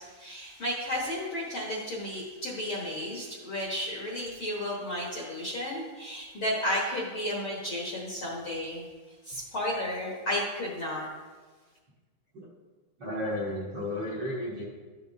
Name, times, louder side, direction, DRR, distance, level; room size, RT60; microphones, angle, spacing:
voice 1, 0.0-8.8 9.2-11.1, left 1 dB, 55° left, -5 dB, 1.5 m, -33 dB
voice 2, 13.0-14.6, left 1 dB, 55° right, -6 dB, 1.2 m, -33 dB
12.5 x 6.8 x 2.7 m, 1.4 s
omnidirectional pair, 4.0 m